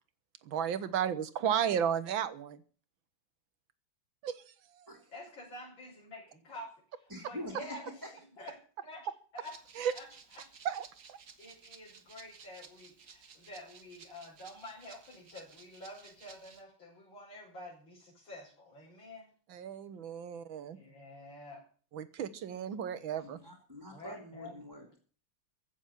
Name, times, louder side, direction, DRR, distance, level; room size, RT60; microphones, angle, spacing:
voice 1, 0.5-2.6 4.2-4.4 9.8-9.9 10.7-11.2 19.5-20.8 21.9-23.4, right 8 dB, 65° right, 15 dB, 1.8 m, -33 dB
voice 2, 5.1-8.5 8.8-9.1 9.3-9.5 9.9-10.1 10.3-10.5 11.4-19.3 20.7-21.6 23.9-24.5, left 1 dB, 65° left, -5 dB, 6.4 m, -49 dB
voice 3, 7.1-7.8 23.2-25.0, equal, 10° right, 3 dB, 2.9 m, -45 dB
Rattle (instrument), 9.4-16.6, right 6 dB, 50° right, 1.9 m, -56 dB
15.5 x 7.2 x 9.9 m, 0.42 s
omnidirectional pair, 2.4 m